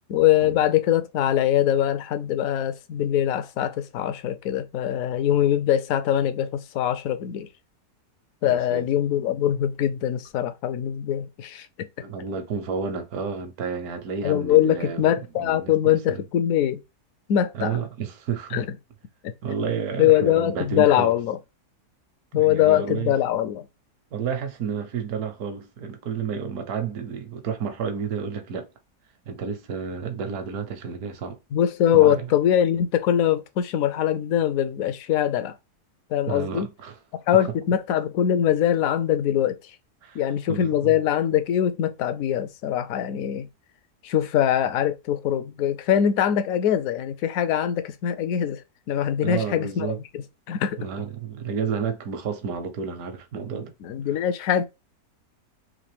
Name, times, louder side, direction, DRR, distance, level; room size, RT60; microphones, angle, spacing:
voice 1, 0.1-7.5 8.4-11.7 14.2-16.8 17.3-17.8 18.5-18.7 19.2-19.3 20.0-21.4 22.3-23.6 31.5-35.5 36.1-36.7 37.3-39.6 40.1-43.5 44.0-48.6 48.9-50.8 53.8-54.6, left 10 dB, 70° left, 0.9 m, -22 dB
voice 2, 8.5-8.9 12.0-15.1 15.3-16.2 17.5-18.6 19.4-21.1 22.3-23.1 24.1-28.7 29.3-31.4 31.9-32.2 36.2-37.0 40.0-40.2 40.5-40.9 49.2-50.0 50.8-53.7, right 6 dB, 70° right, 1.3 m, -31 dB
3.8 x 2.9 x 3.2 m
omnidirectional pair, 1.7 m